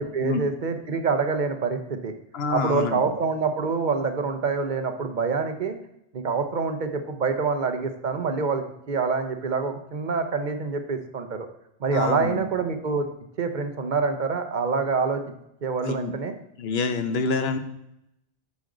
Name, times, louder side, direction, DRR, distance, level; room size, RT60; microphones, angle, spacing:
voice 1, 0.0-2.1 2.5-5.8 6.1-11.5 11.8-13.1 13.4-15.2 15.6-16.3, right 4 dB, 45° right, 7 dB, 0.8 m, -26 dB
voice 2, 2.3-3.1 11.9-12.5 15.8-16.1 16.6-17.6, left 4 dB, 65° left, 9 dB, 1.0 m, -27 dB
8.4 x 6.4 x 3.8 m, 0.78 s
omnidirectional pair, 1.2 m